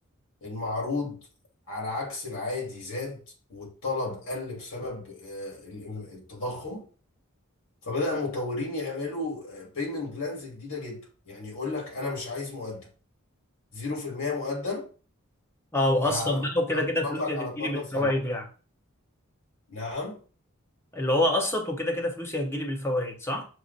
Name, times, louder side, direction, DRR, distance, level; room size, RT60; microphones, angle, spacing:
voice 1, 0.4-1.2 1.7-3.2 3.5-6.9 7.8-12.9 13.7-14.9 16.0-18.1 19.7-20.2, left 3 dB, 75° left, 2.2 m, -33 dB
voice 2, 15.7-18.5 20.9-23.5, left 1 dB, 10° left, 0.8 m, -27 dB
6.1 x 2.1 x 4.0 m
head